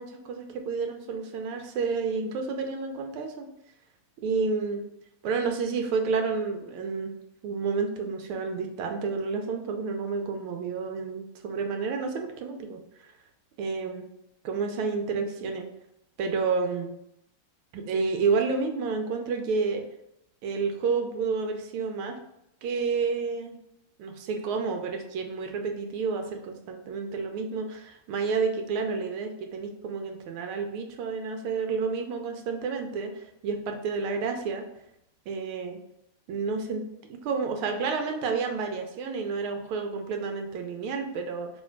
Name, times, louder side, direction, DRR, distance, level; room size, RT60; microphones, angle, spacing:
voice 1, 0.0-3.5 4.2-4.8 5.2-7.1 7.4-13.1 13.6-14.1 14.4-15.7 16.2-17.0 17.7-19.8 20.4-22.2 22.6-23.6 24.0-34.7 35.3-35.8 36.3-36.8 37.1-41.5, right 4 dB, 80° right, 4 dB, 1.4 m, -30 dB
3.2 x 3.0 x 4.4 m, 0.81 s
omnidirectional pair, 2.4 m